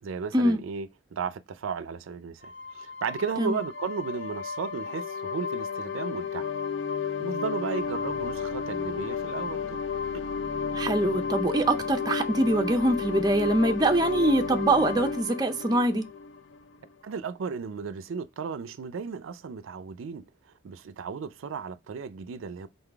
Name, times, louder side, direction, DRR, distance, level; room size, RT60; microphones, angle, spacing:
voice 1, 0.0-6.5 7.0-9.8 17.0-20.3 20.6-22.7, right 5 dB, 80° right, 0.4 m, -35 dB
sound 1, 2.4-16.9, left 5 dB, 70° left, 0.4 m, -32 dB
voice 2, 10.7-16.1, right 1 dB, 20° right, 0.4 m, -24 dB
3.9 x 3.8 x 3.4 m
head